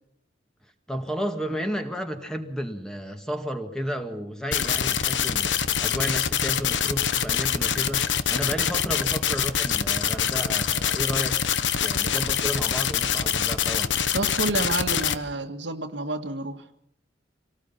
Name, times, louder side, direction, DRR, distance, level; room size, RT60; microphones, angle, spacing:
voice 1, 0.9-11.4 11.8-13.9, equal, 5° left, 5 dB, 1.9 m, -32 dB
sound 1, 4.5-15.2, left 8 dB, 75° left, 1.2 m, -25 dB
voice 2, 14.1-16.6, right 2 dB, 70° right, 6 dB, 1.9 m, -29 dB
25.5 x 19.0 x 5.7 m, 0.71 s
head